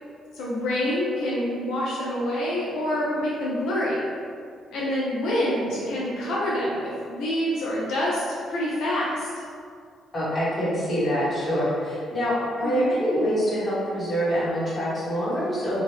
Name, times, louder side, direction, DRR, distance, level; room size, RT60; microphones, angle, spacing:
voice 1, 0.3-4.1 4.7-9.3 12.6-12.9, left 1 dB, 80° left, -7 dB, 0.6 m, -26 dB
voice 2, 10.1-15.8, equal, 30° left, -8 dB, 1.2 m, -25 dB
2.8 x 2.4 x 3.3 m, 2.2 s
cardioid pair, 90°, 0 cm